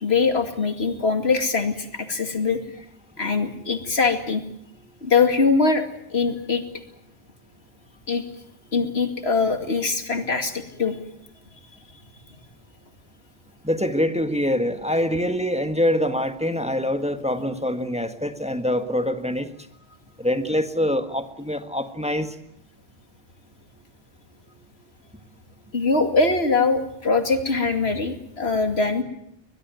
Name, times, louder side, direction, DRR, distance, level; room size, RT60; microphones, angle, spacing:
voice 1, 0.0-2.6 3.2-4.4 5.0-5.9 6.1-6.6 8.1-8.2 8.7-11.0 25.7-29.0, left 4 dB, 90° left, 7 dB, 2.7 m, -22 dB
voice 2, 13.6-19.5 20.2-22.3, left 1 dB, 5° right, 8 dB, 1.6 m, -24 dB
22.0 x 21.5 x 9.3 m, 0.75 s
omnidirectional pair, 1.0 m